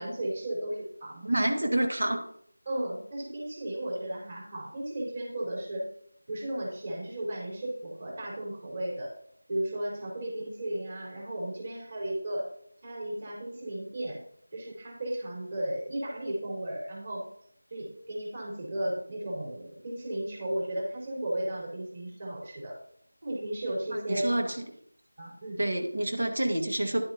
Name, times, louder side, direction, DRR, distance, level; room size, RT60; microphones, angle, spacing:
voice 1, 0.0-1.2 2.6-5.8 6.3-9.1 9.5-12.5 12.8-14.2 14.5-17.2 17.7-22.8 23.2-24.5 25.2-25.6, right 1 dB, 35° right, -4 dB, 4.5 m, -34 dB
voice 2, 1.2-2.2 24.1-24.5 25.6-27.0, right 1 dB, 70° right, 4 dB, 1.8 m, -27 dB
11.0 x 8.8 x 2.9 m, 0.68 s
figure-of-eight pair, 170°, 0 cm